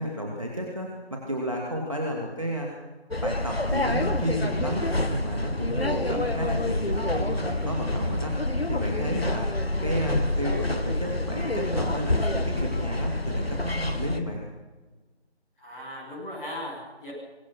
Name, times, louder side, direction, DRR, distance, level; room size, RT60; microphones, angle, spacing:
voice 1, 0.0-2.7 3.2-9.5 9.8-14.4, equal, 30° right, -1 dB, 2.5 m, -32 dB
sound 1, 3.1-14.2, left 1 dB, 60° left, 1.9 m, -27 dB
voice 2, 15.5-17.1, left 1 dB, 5° left, -16 dB, 6.9 m, -37 dB
24.5 x 22.5 x 6.3 m, 1.3 s
figure-of-eight pair, 175°, 33 cm